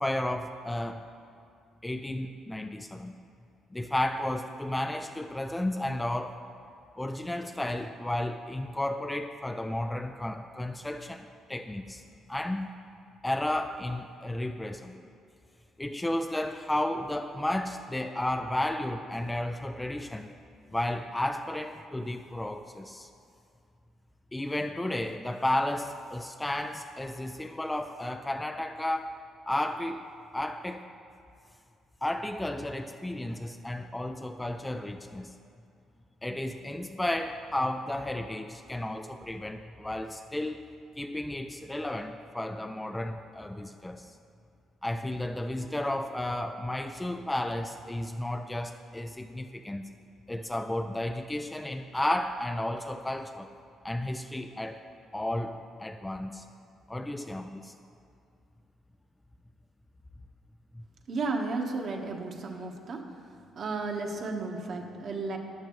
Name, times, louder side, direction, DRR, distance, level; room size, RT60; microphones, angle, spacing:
voice 1, 0.0-1.1 1.8-3.1 3.7-6.4 7.0-12.0 12.3-12.7 13.2-15.0 15.8-20.3 20.7-23.1 24.3-29.2 29.5-30.0 30.3-30.8 32.0-35.3 36.2-40.6 41.0-44.1 44.8-49.8 50.3-53.5 53.8-54.8 55.1-56.5 56.9-57.7, left 1 dB, 10° left, 7 dB, 0.3 m, -33 dB
voice 2, 61.1-63.0 63.6-65.4, right 3 dB, 45° right, 2 dB, 1.2 m, -33 dB
14.5 x 10.5 x 3.1 m, 2.4 s
cardioid pair, 125°, 0 cm